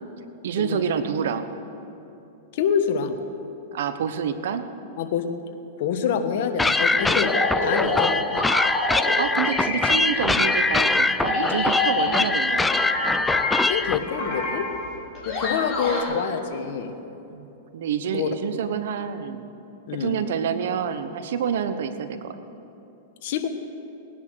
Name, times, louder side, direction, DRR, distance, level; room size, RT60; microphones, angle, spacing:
voice 1, 0.4-1.5 3.7-4.6 9.2-12.6 17.3-19.4 19.9-22.4, right 7 dB, 75° right, 10 dB, 1.1 m, -27 dB
voice 2, 2.5-3.2 5.0-5.3 5.8-7.3 7.6-8.4 13.7-14.7 15.2-16.9 18.1-18.3 19.9-20.2 23.2-23.5, left 7 dB, 60° left, 7 dB, 1.4 m, -26 dB
sound 1, 6.6-14.0, left 3 dB, 10° left, 0.4 m, -23 dB
sound 2, 7.0-9.2 9.4-10.1 10.4-12.3 12.6-16.0, left 3 dB, 25° left, 4.0 m, -26 dB
19.0 x 10.5 x 6.4 m, 2.9 s
hypercardioid pair, 135°, 0 cm